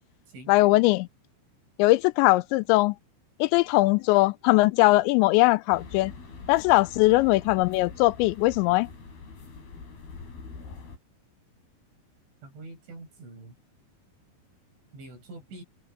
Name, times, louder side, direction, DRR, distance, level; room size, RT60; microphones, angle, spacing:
voice 1, 0.5-1.1 1.8-3.0 3.4-6.1 6.5-8.9, left 20 dB, 85° left, 2.7 m, -20 dB
sound 1, 5.7-11.0, left 4 dB, 55° left, 7.4 m, -44 dB
voice 2, 12.4-13.5 14.9-15.6, right 2 dB, 75° right, 9.9 m, -44 dB
omnidirectional pair, 5.5 m